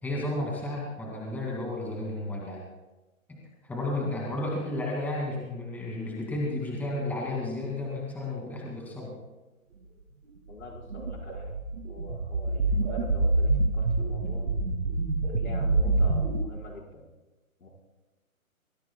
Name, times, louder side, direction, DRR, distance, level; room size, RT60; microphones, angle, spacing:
voice 1, 0.0-2.6 3.3-9.1, left 1 dB, 5° left, -3 dB, 2.4 m, -32 dB
voice 2, 10.5-11.6 11.9-14.5 15.3-17.1 17.6-17.7, left 2 dB, 85° left, -2 dB, 5.2 m, -45 dB
sound 1, 10.6-16.4, right 2 dB, 60° right, 2.5 m, -26 dB
24.5 x 17.5 x 2.3 m, 1.1 s
hypercardioid pair, 155°, 42 cm